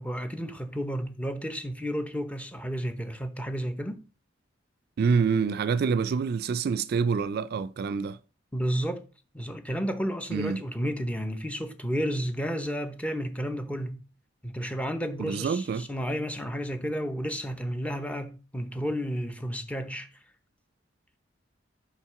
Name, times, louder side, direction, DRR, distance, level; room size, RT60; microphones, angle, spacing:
voice 1, 0.0-4.0 8.5-9.0 9.3-14.0 14.4-20.1, equal, 5° left, 0.7 m, -32 dB
voice 2, 5.0-8.2 10.3-10.6 15.2-15.9, right 5 dB, 55° right, 0.3 m, -26 dB
5.8 x 5.0 x 4.7 m
head